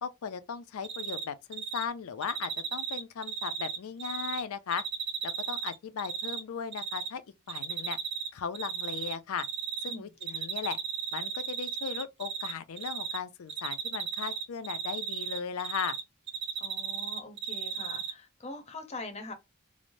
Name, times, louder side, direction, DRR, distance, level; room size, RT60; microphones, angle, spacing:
voice 1, 0.0-4.8 5.2-7.2 7.5-8.0 8.3-9.5 9.8-10.8 11.1-16.0, left 7 dB, 80° left, 0.4 m, -37 dB
Cricket, 0.8-1.2 1.5-1.8 2.2-4.4 4.7-6.4 6.7-7.1 7.5-8.3 8.5-9.9 10.2-12.5 12.8-13.2 13.5-16.0 16.3-18.1, right 7 dB, 55° right, 0.5 m, -34 dB
voice 2, 9.9-10.5 16.6-19.3, left 2 dB, 30° left, 0.6 m, -43 dB
3.1 x 2.0 x 2.5 m
head